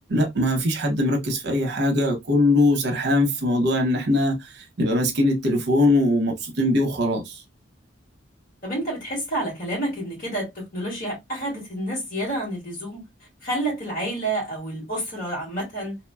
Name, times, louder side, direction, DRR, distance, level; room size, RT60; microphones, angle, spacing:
voice 1, 0.1-4.4 4.8-7.3, left 1 dB, 60° right, 0.8 m, -21 dB
voice 2, 8.6-13.0 13.4-16.0, right 1 dB, 45° left, 1.8 m, -29 dB
3.0 x 2.1 x 2.2 m
head